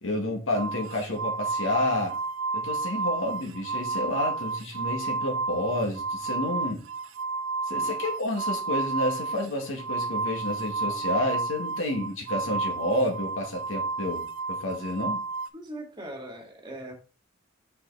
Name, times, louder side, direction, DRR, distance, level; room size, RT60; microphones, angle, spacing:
voice 1, 0.0-2.2 2.5-6.8 7.7-15.2, left 1 dB, 80° left, 1.9 m, -30 dB
sound 1, 0.5-15.5, right 3 dB, 90° right, 0.7 m, -31 dB
voice 2, 15.5-16.9, right 1 dB, 25° right, 1.9 m, -40 dB
5.7 x 5.6 x 3.9 m
head